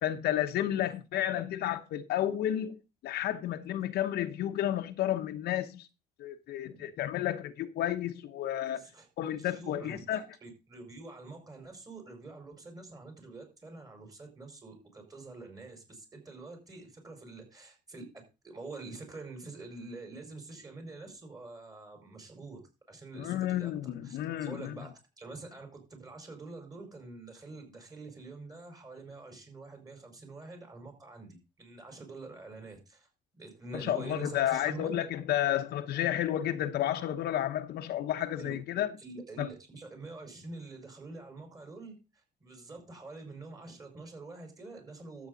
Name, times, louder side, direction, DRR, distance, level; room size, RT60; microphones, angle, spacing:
voice 1, 0.0-2.8 3.0-5.9 6.2-8.8 9.2-10.2 23.1-24.8 33.7-38.9 39.4-39.5, left 12 dB, 70° left, 1.0 m, -31 dB
voice 2, 8.7-9.1 9.4-22.6 22.9-23.7 24.0-33.1 33.3-35.0 38.4-38.6 39.0-45.3, right 3 dB, 20° right, 5.1 m, -46 dB
12.5 x 8.1 x 3.9 m
cardioid pair, 110°, 17 cm